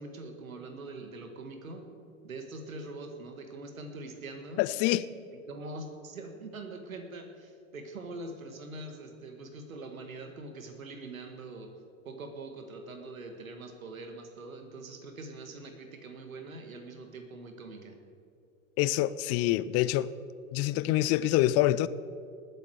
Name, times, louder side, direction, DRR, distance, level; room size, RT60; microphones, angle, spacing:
voice 1, 0.0-1.9 2.2-4.6 5.3-11.8 12.1-18.0, right 2 dB, 85° right, 1.9 m, -43 dB
voice 2, 4.6-5.1 18.8-20.1 20.5-21.9, left 15 dB, 40° left, 0.5 m, -26 dB
20.0 x 8.2 x 4.8 m
hypercardioid pair, 95°, 40 cm